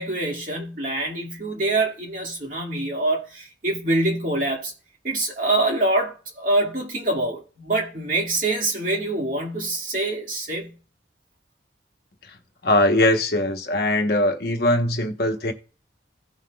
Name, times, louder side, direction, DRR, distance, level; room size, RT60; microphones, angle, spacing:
voice 1, 0.0-4.7 5.0-10.8, right 2 dB, 45° right, 2.2 m, -25 dB
voice 2, 12.6-15.5, left 1 dB, 55° left, 1.1 m, -21 dB
16.0 x 5.7 x 2.4 m
head